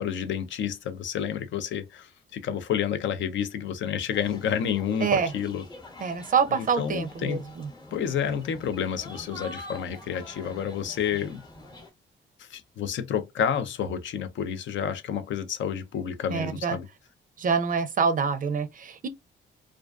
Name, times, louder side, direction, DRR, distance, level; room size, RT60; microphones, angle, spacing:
voice 1, 0.0-5.6 6.5-7.4 7.9-11.4 12.4-16.9, left 8 dB, 65° left, 0.5 m, -30 dB
sound 1, 4.1-11.9, left 2 dB, 20° left, 0.9 m, -46 dB
voice 2, 5.0-5.3 6.0-7.7 16.3-16.8 17.4-19.1, right 6 dB, 40° right, 0.5 m, -26 dB
2.3 x 2.2 x 2.3 m
cardioid pair, 80°, 21 cm